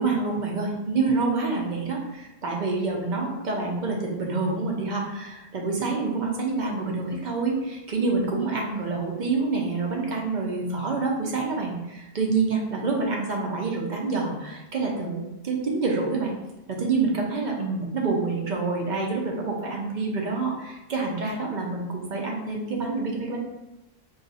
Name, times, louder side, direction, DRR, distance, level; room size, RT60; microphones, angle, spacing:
voice 1, 0.0-16.3 16.7-23.4, right 3 dB, 55° right, -1 dB, 0.6 m, -27 dB
2.5 x 2.3 x 3.9 m, 0.97 s
omnidirectional pair, 1.1 m